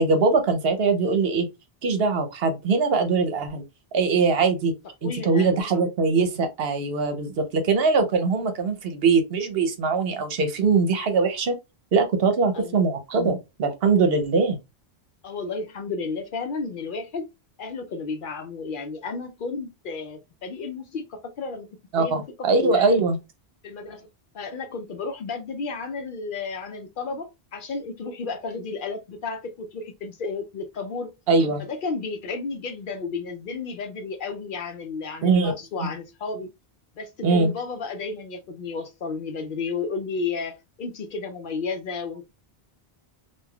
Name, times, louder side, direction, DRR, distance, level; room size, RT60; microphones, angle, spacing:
voice 1, 0.0-1.5 1.8-3.6 3.9-4.7 5.0-11.5 11.9-14.6 21.9-23.2 31.3-31.6 35.2-35.5 35.8-35.9 37.2-37.5, right 4 dB, 70° right, 0.9 m, -22 dB
voice 2, 5.0-5.8 12.5-12.8 15.2-17.3 17.6-23.0 23.6-24.1 24.3-31.1 31.6-36.5 37.0-42.3, left 4 dB, 60° left, 0.6 m, -33 dB
3.2 x 2.3 x 2.2 m
omnidirectional pair, 1.1 m